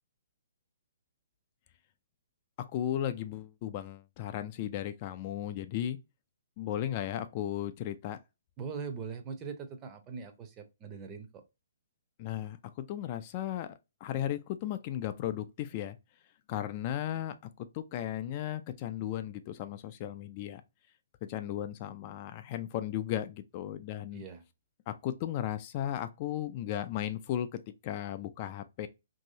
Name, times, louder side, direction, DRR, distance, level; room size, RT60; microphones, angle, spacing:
voice 1, 2.6-6.0 6.6-8.2 12.2-13.7 14.0-16.0 16.5-17.3 17.7-20.6 21.2-24.2 24.9-28.9, left 11 dB, 35° left, 0.3 m, -35 dB
voice 2, 8.6-11.4 24.1-24.4, right 5 dB, 25° right, 0.6 m, -41 dB
3.0 x 2.7 x 2.7 m
figure-of-eight pair, 130°, 0 cm